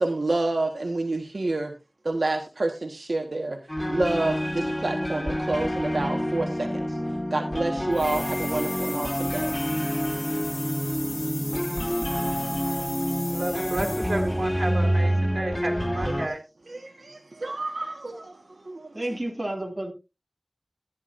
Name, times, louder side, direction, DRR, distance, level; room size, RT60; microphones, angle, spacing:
voice 1, 0.0-1.7 2.0-3.6 3.9-7.0 7.3-9.6 16.7-19.0, right 2 dB, 75° right, 1.4 m, -28 dB
sound 1, 3.7-16.3, equal, 20° left, 1.5 m, -28 dB
sound 2, 7.9-14.4, left 1 dB, 55° left, 5.5 m, -37 dB
voice 2, 12.6-16.4, right 1 dB, 60° right, 3.6 m, -32 dB
voice 3, 18.9-19.9, right 1 dB, 30° right, 2.4 m, -30 dB
15.0 x 10.5 x 2.6 m
wide cardioid pair, 45°, 0 cm